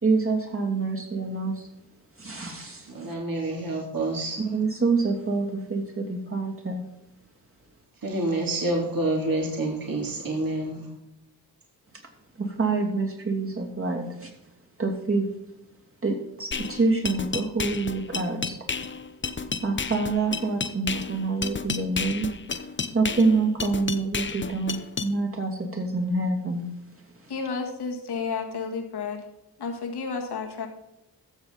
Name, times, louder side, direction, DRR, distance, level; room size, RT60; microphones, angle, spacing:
voice 1, 0.0-1.7 2.2-3.1 4.5-6.8 12.4-14.3 14.8-15.3 16.0-18.6 19.6-22.3 22.9-26.6, right 3 dB, 30° right, 2 dB, 2.7 m, -26 dB
voice 2, 2.9-4.4 8.0-10.8, right 2 dB, 55° right, -1 dB, 3.1 m, -28 dB
sound 1, 16.5-25.1, left 5 dB, 30° left, 0.8 m, -32 dB
voice 3, 27.3-29.3 29.6-30.7, left 5 dB, 70° left, 2 dB, 1.9 m, -31 dB
13.0 x 7.2 x 4.0 m, 0.86 s
cardioid pair, 60°, 41 cm